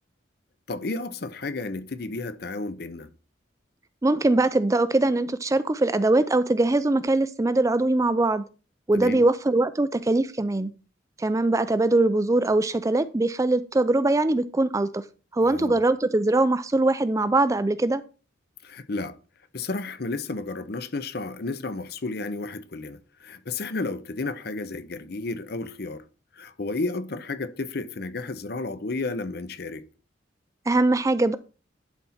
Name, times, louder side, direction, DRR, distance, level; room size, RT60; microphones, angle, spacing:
voice 1, 0.7-3.1 8.9-9.3 15.4-15.8 18.6-19.2 19.5-26.0 26.4-29.8, left 3 dB, 55° left, 0.7 m, -32 dB
voice 2, 4.0-8.4 8.9-10.7 11.2-15.0 15.3-18.0 30.7-31.4, right 2 dB, 15° right, 0.4 m, -22 dB
11.0 x 4.3 x 4.2 m
head